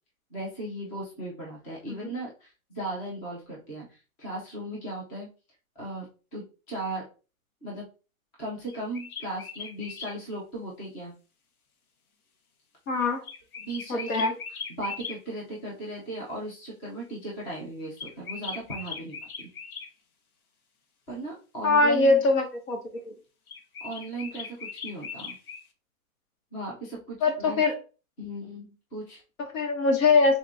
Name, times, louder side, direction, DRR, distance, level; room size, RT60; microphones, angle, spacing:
voice 1, 0.3-5.3 5.8-7.1 7.6-7.9 8.4-11.1 13.6-14.4 14.7-19.5 21.1-22.2 23.8-25.4 26.5-27.6 28.2-29.2, right 1 dB, 10° left, -4 dB, 0.3 m, -37 dB
sound 1, 8.7-10.2 13.2-15.2 18.0-19.9 23.5-25.6, left 5 dB, 85° left, 1.0 m, -39 dB
voice 2, 12.9-13.2 13.9-14.3 21.6-22.8 23.0-23.1 27.2-27.7 29.4-30.4, left 3 dB, 65° left, 4 dB, 1.4 m, -22 dB
3.5 x 2.5 x 3.4 m, 0.34 s
hypercardioid pair, 135°, 43 cm